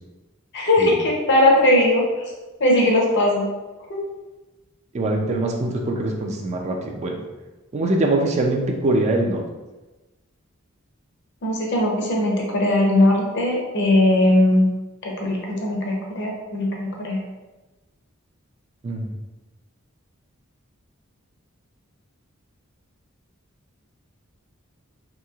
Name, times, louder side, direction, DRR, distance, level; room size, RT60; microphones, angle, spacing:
voice 1, 0.5-2.3 2.6-3.5 3.9-4.0 11.4-14.7 15.0-17.2, left 1 dB, 55° left, -1 dB, 0.7 m, -19 dB
voice 2, 4.9-7.2 7.7-9.4 18.8-19.1, right 2 dB, 30° right, 1 dB, 0.3 m, -23 dB
3.0 x 2.7 x 2.3 m, 1.1 s
head